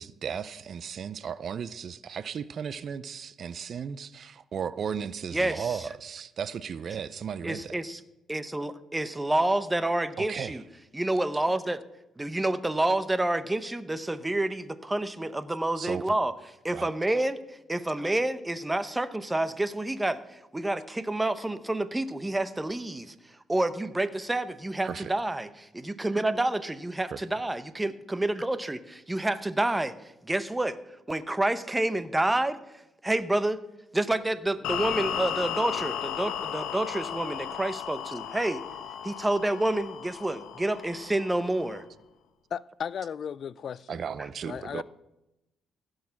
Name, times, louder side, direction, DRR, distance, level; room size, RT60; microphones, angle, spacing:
voice 1, 0.0-7.8 10.2-10.6 15.8-16.0 16.7-16.9 24.8-25.1 27.1-27.2 43.9-44.8, right 7 dB, 55° right, 0.5 m, -35 dB
voice 2, 5.3-5.7 7.4-8.0 8.3-10.6 10.9-11.8 12.2-16.3 16.6-23.1 23.5-29.9 30.2-30.8 31.1-32.6 33.0-33.6 33.9-38.6 39.0-41.8, right 1 dB, 15° right, 0.8 m, -28 dB
sound 1, 34.6-41.8, left 9 dB, 90° left, 0.9 m, -35 dB
voice 3, 42.5-44.0 44.4-44.8, left 8 dB, 55° left, 0.3 m, -35 dB
16.0 x 6.5 x 5.8 m
cardioid pair, 90°, 0 cm